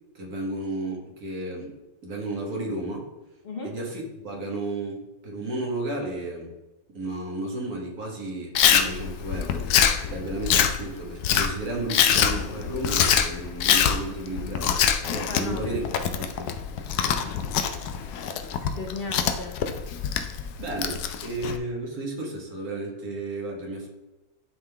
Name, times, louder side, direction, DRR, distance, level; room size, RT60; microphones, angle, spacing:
voice 1, 0.1-3.1 3.6-6.5 6.9-9.7 10.1-15.8 16.2-16.5 20.6-23.9, right 2 dB, 75° right, -1 dB, 2.0 m, -33 dB
voice 2, 3.4-3.8 15.3-16.3 18.8-19.6, left 3 dB, 50° left, 4 dB, 0.7 m, -36 dB
Chewing mastication, 8.5-21.6, left 8 dB, 85° left, 1.1 m, -24 dB
11.0 x 3.8 x 3.4 m, 1.0 s
omnidirectional pair, 1.6 m